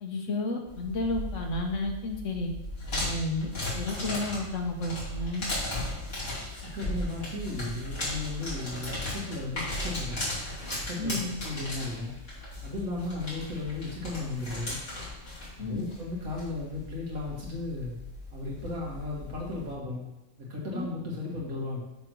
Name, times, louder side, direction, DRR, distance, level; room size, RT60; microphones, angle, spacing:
voice 1, 0.0-2.5 3.0-5.5 11.0-11.3 15.6-15.9 20.7-20.9, left 2 dB, 65° left, 2 dB, 1.3 m, -32 dB
sound 1, 0.7-19.7, left 1 dB, 45° left, 3.1 m, -37 dB
voice 2, 6.6-10.2 10.9-12.2 12.6-14.8 15.6-18.0 18.3-20.0 20.4-21.8, left 2 dB, 85° right, -4 dB, 2.3 m, -35 dB
6.8 x 3.6 x 6.1 m, 0.92 s
omnidirectional pair, 1.4 m